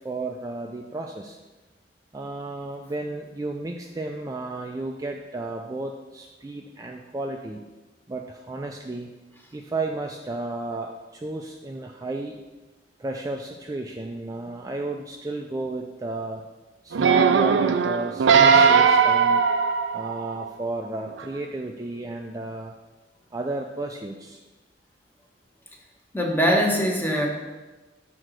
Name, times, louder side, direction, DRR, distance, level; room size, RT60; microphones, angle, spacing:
voice 1, 0.0-1.4 2.1-7.6 8.1-9.1 9.5-12.4 13.0-16.4 16.8-19.4 19.9-22.7 23.3-24.4, right 2 dB, 20° right, 2 dB, 0.3 m, -33 dB
sound 1, 16.9-20.4 21.1-21.2, right 6 dB, 90° right, 0.4 m, -18 dB
voice 2, 26.1-27.3, equal, 10° left, 0 dB, 0.9 m, -22 dB
6.4 x 3.8 x 6.1 m, 1.2 s
head